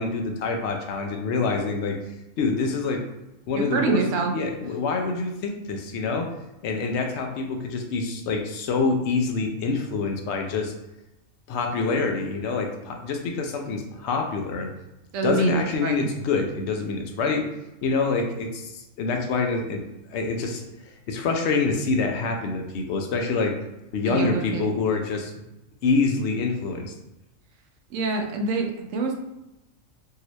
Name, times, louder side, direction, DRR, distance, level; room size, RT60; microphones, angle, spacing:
voice 1, 0.0-2.0 2.4-3.0 3.5-4.0 4.3-6.3 6.6-10.7 11.5-14.7 15.2-17.4 17.8-19.8 20.1-23.5 23.9-25.5 25.8-26.9, left 4 dB, 65° left, 3 dB, 0.8 m, -26 dB
voice 2, 3.5-4.3 15.1-16.1 24.0-24.7 27.9-29.1, right 4 dB, 75° right, 3 dB, 0.9 m, -26 dB
2.8 x 2.7 x 3.0 m, 0.93 s
omnidirectional pair, 1.4 m